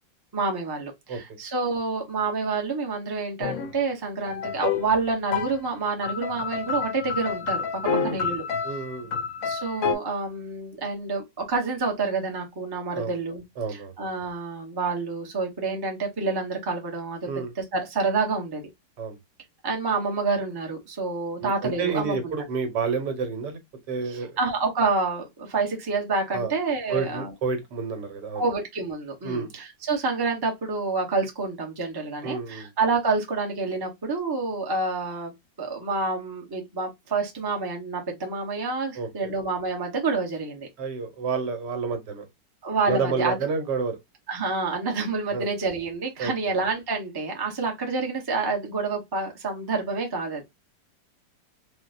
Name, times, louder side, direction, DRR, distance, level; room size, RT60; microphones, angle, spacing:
voice 1, 0.3-7.7 8.0-8.4 9.4-13.4 13.7-17.2 17.7-18.6 19.6-22.3 24.1-27.3 28.4-40.7 42.6-43.4 44.3-50.4, right 4 dB, 20° right, 0.7 m, -28 dB
sound 1, 3.4-3.7 4.3-5.0 5.3-5.6 6.0-9.9, left 6 dB, 65° left, 1.0 m, -29 dB
voice 2, 7.9-8.2 8.6-9.2 12.9-13.1 13.6-13.9 17.3-17.5 19.0-19.2 21.4-23.6 23.9-24.4 26.3-26.5 26.9-28.5 29.2-29.5 32.2-32.7 38.9-39.3 40.8-42.2 42.9-44.0 45.3-45.5 46.2-46.3, right 5 dB, 80° right, 1.6 m, -29 dB
4.4 x 2.2 x 2.4 m
omnidirectional pair, 1.8 m